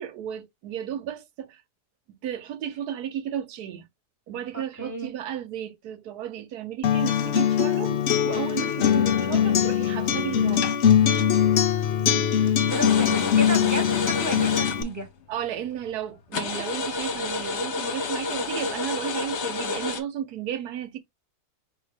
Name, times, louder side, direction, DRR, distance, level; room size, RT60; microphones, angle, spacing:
voice 1, 0.0-1.6 2.1-3.9 4.3-10.7 15.3-21.0, right 10 dB, 75° right, 1.2 m, -33 dB
voice 2, 4.5-5.1 12.0-12.3 12.7-15.1, right 1 dB, 10° right, 1.0 m, -33 dB
Acoustic guitar, 6.8-14.8, left 9 dB, 75° left, 0.6 m, -22 dB
sound 1, 12.7-15.1 15.3-15.4 15.9-16.0 16.3-20.0, left 4 dB, 55° left, 0.9 m, -30 dB
5.1 x 2.9 x 3.2 m
omnidirectional pair, 1.7 m